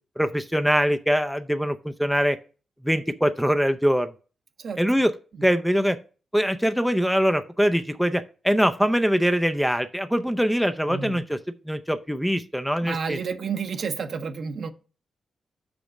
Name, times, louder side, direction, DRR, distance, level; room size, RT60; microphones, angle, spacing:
voice 1, 0.2-2.4 2.8-4.1 4.8-5.1 5.4-6.0 6.3-11.4 11.7-13.2, equal, ahead, 0.5 m, -23 dB
voice 2, 10.9-11.2 12.8-14.7, right 6 dB, 60° right, 0.9 m, -30 dB
6.0 x 5.2 x 6.2 m
cardioid pair, 105°, 0 cm